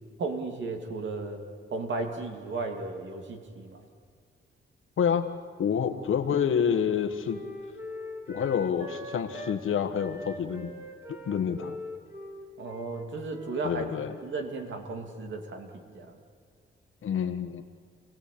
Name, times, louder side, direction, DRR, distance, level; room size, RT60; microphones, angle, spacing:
voice 1, 0.2-1.4 1.7-3.8 12.6-13.8 14.2-16.2, right 3 dB, 65° right, 4 dB, 2.8 m, -35 dB
voice 2, 5.0-5.3 5.6-7.4 8.3-10.7 11.2-11.8 13.6-14.2 17.0-17.6, left 7 dB, 75° left, 7 dB, 1.5 m, -28 dB
Wind instrument woodwind instrument, 5.6-9.6 10.0-14.4, left 1 dB, 10° right, 2.7 m, -43 dB
28.5 x 18.0 x 8.6 m, 2.2 s
wide cardioid pair, 170°, 21 cm